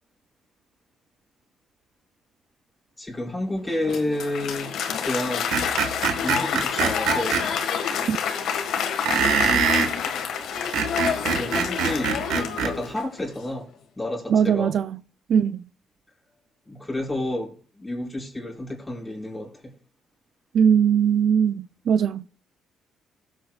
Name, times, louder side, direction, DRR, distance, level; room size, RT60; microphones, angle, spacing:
voice 1, 3.0-4.7 5.0-5.6 6.2-7.4 10.9-13.7 14.0-14.7 16.7-19.7, left 1 dB, 10° left, 4.8 m, -30 dB
Applause, 3.6-13.2, left 7 dB, 80° left, 1.6 m, -28 dB
Screech, 5.5-7.4 9.1-9.9 10.6-12.7, right 6 dB, 90° right, 1.4 m, -23 dB
voice 2, 14.3-15.0 15.3-15.6 20.5-22.3, right 8 dB, 65° right, 0.4 m, -20 dB
18.5 x 7.9 x 2.4 m
cardioid pair, 90°, 0 cm